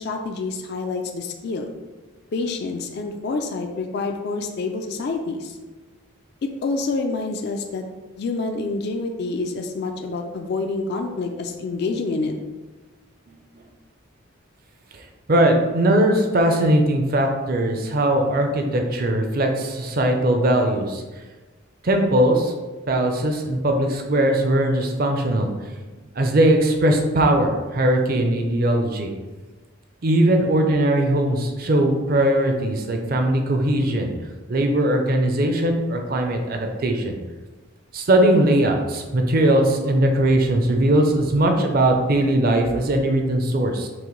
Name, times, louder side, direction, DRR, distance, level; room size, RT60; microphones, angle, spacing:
voice 1, 0.0-1.7 2.3-5.6 6.6-7.8 8.2-12.3, left 3 dB, 50° left, 4 dB, 0.3 m, -27 dB
voice 2, 15.3-21.0 21.8-22.5 22.9-25.5 26.1-29.1 30.0-34.1 34.5-37.2 37.9-43.9, right 1 dB, 45° right, 3 dB, 0.5 m, -20 dB
6.0 x 2.1 x 3.0 m, 1.2 s
head